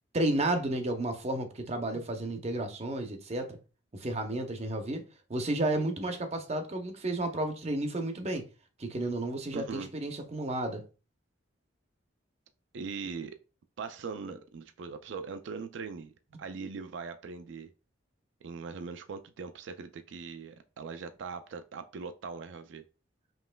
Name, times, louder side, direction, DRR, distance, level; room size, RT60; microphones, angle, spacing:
voice 1, 0.1-3.6 3.9-5.0 5.3-8.4 8.8-10.8, right 1 dB, 35° right, 0.6 m, -32 dB
voice 2, 9.5-9.9 12.7-13.4 13.8-17.7 18.4-22.8, right 5 dB, 70° right, 0.4 m, -40 dB
5.3 x 3.1 x 2.2 m
head